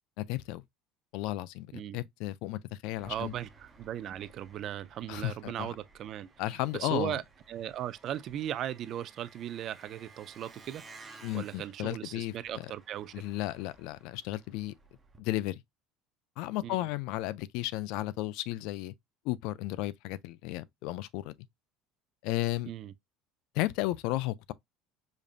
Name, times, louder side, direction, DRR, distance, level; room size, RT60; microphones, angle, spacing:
voice 1, 0.2-0.6 1.1-1.7 1.9-3.3 5.1-5.7 6.4-7.2 11.2-12.7 13.1-14.7 15.2-15.6 16.4-18.9 19.2-21.3 22.2-22.7 23.5-24.5, left 16 dB, 65° left, 0.3 m, -34 dB
Engine, 3.0-15.2, right 4 dB, 15° right, 0.7 m, -56 dB
voice 2, 3.0-6.3 6.7-7.2 7.5-10.8 11.3-13.1 16.6-16.8 22.7-22.9, right 11 dB, 40° right, 0.3 m, -37 dB
5.1 x 2.6 x 2.4 m
cardioid pair, 155°, 0 cm